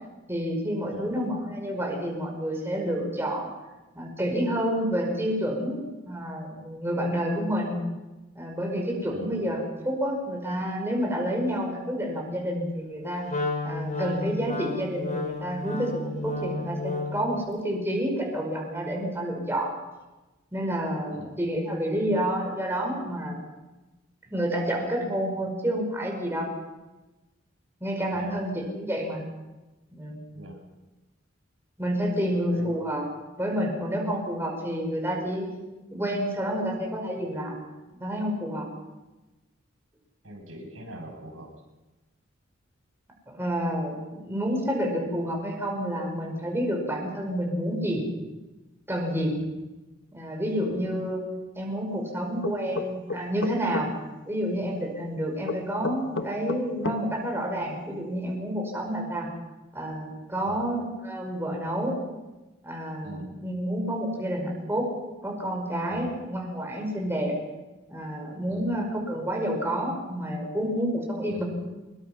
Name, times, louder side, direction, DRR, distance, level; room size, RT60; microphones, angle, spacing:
voice 1, 0.3-3.5 4.0-7.7 8.3-13.3 13.6-19.7 20.5-23.4 24.3-26.5 27.8-29.2 29.9-30.2 31.8-33.0 33.4-35.5 35.9-37.6 37.9-38.7 43.3-48.1 48.9-49.4 50.1-51.2 51.6-53.9 54.3-59.3 59.7-62.0 62.6-64.9 65.2-67.4 67.9-71.4, equal, 10° right, 0 dB, 5.2 m, -29 dB
Wind instrument woodwind instrument, 13.3-17.3, left 3 dB, 40° left, 5.0 m, -32 dB
voice 2, 40.2-41.5 49.3-49.5 60.4-60.7 63.0-63.4 65.9-66.1 68.5-68.8 71.3-71.4, equal, 85° right, 1 dB, 6.4 m, -42 dB
sound 1, 52.4-53.9 55.5-57.0, left 3 dB, 65° left, 1.4 m, -31 dB
24.5 x 22.0 x 5.7 m, 1.1 s
head